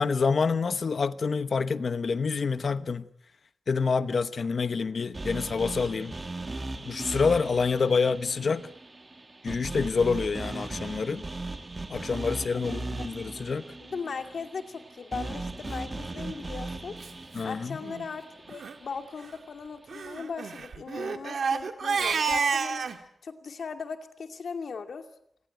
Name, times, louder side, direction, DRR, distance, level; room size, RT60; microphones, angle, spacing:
voice 1, 0.0-3.1 3.7-6.1 6.8-8.7 9.4-11.3 11.9-13.7 17.3-17.8, left 5 dB, 55° left, 1.0 m, -27 dB
sound 1, 5.1-19.3, right 2 dB, 25° right, 1.9 m, -38 dB
voice 2, 12.5-13.1 13.8-17.0 17.4-22.9 23.2-25.0, left 5 dB, 75° left, 2.5 m, -38 dB
Crying sobbing, 16.1-16.3 17.0-17.1 17.4-17.5 17.8-18.1 18.5-18.7 19.9-23.0, right 5 dB, 80° right, 1.9 m, -30 dB
27.0 x 20.0 x 9.1 m
wide cardioid pair, 180°, 0 cm